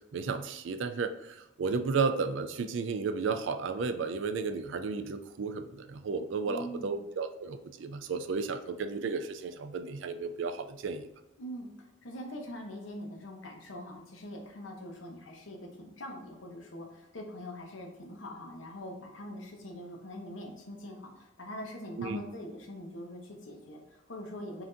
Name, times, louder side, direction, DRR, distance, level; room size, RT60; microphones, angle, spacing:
voice 1, 0.1-11.1 22.0-22.2, right 4 dB, 75° right, 9 dB, 0.4 m, -33 dB
voice 2, 6.5-7.0 11.4-11.7 12.0-24.6, left 1 dB, 80° left, 1 dB, 0.9 m, -43 dB
5.6 x 2.7 x 2.6 m, 0.94 s
head